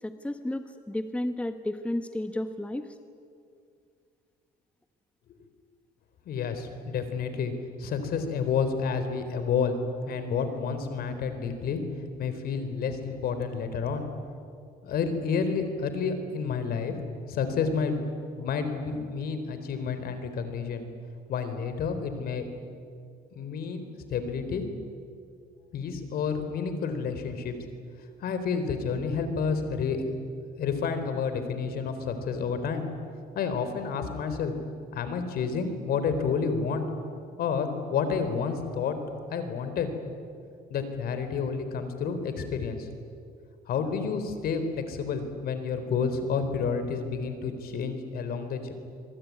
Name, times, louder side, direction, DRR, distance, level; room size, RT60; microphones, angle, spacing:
voice 1, 0.0-2.9, left 1 dB, 5° left, 8 dB, 1.3 m, -32 dB
voice 2, 6.3-7.5 7.8-9.8 10.1-11.8 12.2-14.1 14.8-16.9 17.3-18.0 18.4-20.9 21.3-22.4 23.4-23.8 24.1-24.7 25.7-27.6 28.2-30.2 30.6-32.9 33.3-34.5 34.9-36.8 37.4-39.0 39.3-39.9 40.7-42.9 43.7-48.7, left 5 dB, 65° left, 9 dB, 4.0 m, -30 dB
25.5 x 23.0 x 9.7 m, 2.3 s
cardioid pair, 110°, 17 cm